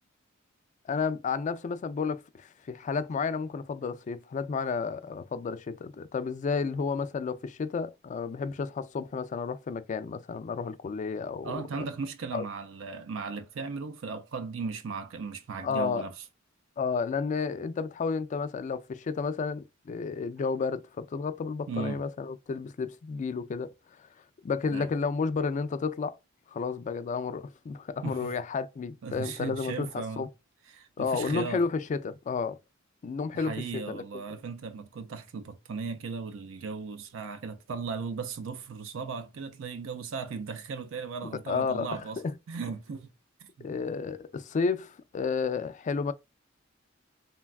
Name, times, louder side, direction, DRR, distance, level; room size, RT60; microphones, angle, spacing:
voice 1, 0.9-11.6 12.3-12.4 15.6-16.1 16.8-23.7 24.4-26.2 26.5-29.9 30.2-30.3 31.0-32.6 33.0-34.2 41.5-41.9 42.2-42.3 43.6-46.1, left 5 dB, 35° left, 0.3 m, -31 dB
voice 2, 11.4-16.2 21.7-22.0 24.7-24.9 28.0-28.4 29.0-30.3 30.7-31.6 33.3-42.2 42.5-43.1 43.4-43.7, right 5 dB, 70° right, 0.4 m, -37 dB
3.3 x 2.2 x 2.3 m
head